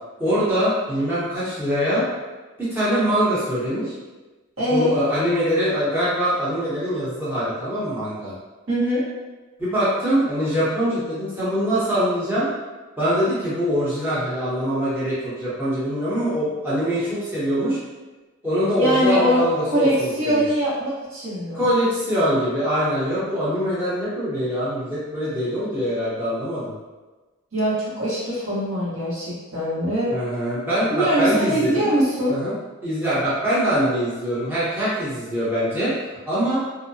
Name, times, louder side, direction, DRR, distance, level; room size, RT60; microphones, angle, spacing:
voice 1, 0.2-2.0 2.6-3.9 4.7-8.3 9.6-12.5 13.0-17.8 18.4-20.5 21.5-26.7 30.1-31.9 32.3-32.5 32.8-35.9 36.3-36.6, equal, 10° right, -11 dB, 0.8 m, -23 dB
voice 2, 4.6-5.0 8.7-9.0 18.8-19.4 19.7-21.6 27.5-30.1 30.9-32.4, equal, 75° right, -9 dB, 1.1 m, -22 dB
2.6 x 2.1 x 2.6 m, 1.2 s
head